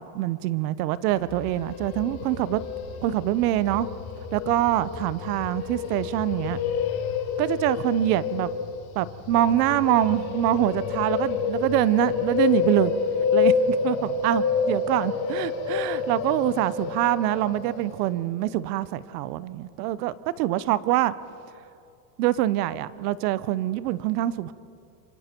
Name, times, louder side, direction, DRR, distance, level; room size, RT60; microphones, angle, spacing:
voice 1, 0.0-2.6 3.0-3.9 4.3-6.6 7.4-8.5 8.9-12.9 13.3-21.1 22.2-24.5, right 14 dB, 75° right, 17 dB, 1.0 m, -25 dB
sound 1, 1.1-18.1, left 6 dB, 50° left, 3.1 m, -28 dB
27.0 x 25.5 x 4.5 m, 2.5 s
supercardioid pair, 115°, 47 cm